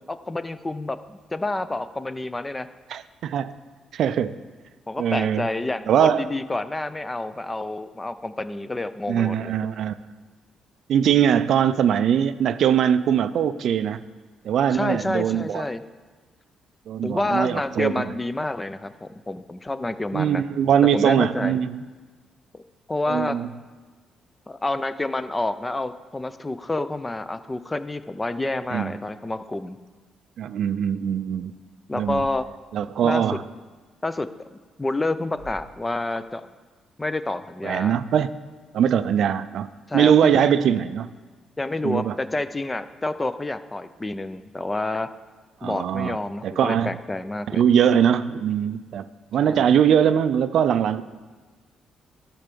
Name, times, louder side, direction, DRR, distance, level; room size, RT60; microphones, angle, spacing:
voice 1, 0.1-2.7 4.9-9.5 14.7-15.8 17.0-20.4 20.9-21.6 22.5-22.6 22.9-23.4 24.5-29.8 31.9-32.5 33.0-33.4 34.0-36.5 37.0-38.0 39.9-40.5 41.6-45.1 45.6-47.6 49.4-49.8, left 2 dB, 20° left, 12 dB, 0.5 m, -29 dB
voice 2, 2.9-3.5 3.9-4.4 5.0-5.5 5.9-6.3 9.1-9.9 10.9-14.0 14.4-15.7 16.9-18.1 20.1-21.8 23.1-23.5 28.7-28.9 30.4-31.5 31.9-32.3 32.7-33.4 37.6-38.4 38.7-39.7 39.9-41.1 41.8-42.2 45.6-46.2 46.4-46.9 47.5-49.1 49.3-51.0, right 9 dB, 70° right, 13 dB, 0.3 m, -21 dB
Thump thud, 32.0-32.6 35.3-35.9, left 2 dB, 55° left, 2.8 m, -45 dB
12.0 x 4.5 x 6.8 m, 1.4 s
cardioid pair, 90°, 0 cm